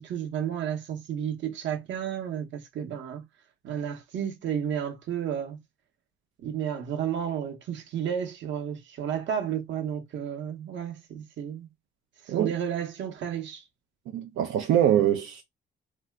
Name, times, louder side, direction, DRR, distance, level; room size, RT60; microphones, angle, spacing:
voice 1, 0.0-3.2 3.6-5.6 6.4-11.7 12.2-13.6, right 9 dB, 65° right, 0.8 m, -32 dB
voice 2, 14.1-15.4, right 10 dB, 90° right, 0.5 m, -23 dB
2.7 x 2.2 x 3.3 m
cardioid pair, 90°, 20 cm